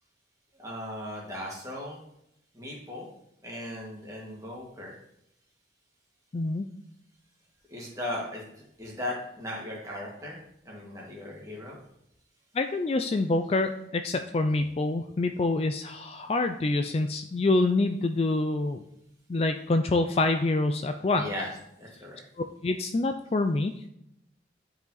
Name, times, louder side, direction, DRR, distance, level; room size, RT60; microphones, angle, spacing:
voice 1, 0.6-2.0 2.5-3.1 3.4-4.9 7.7-8.4 8.8-10.4 10.6-11.8 21.1-21.5 21.8-22.2, left 1 dB, 20° right, -3 dB, 2.0 m, -37 dB
voice 2, 6.3-6.7 12.5-18.8 19.3-21.3 22.4-23.9, left 2 dB, 35° left, 7 dB, 0.3 m, -26 dB
9.3 x 4.9 x 4.0 m, 0.78 s
head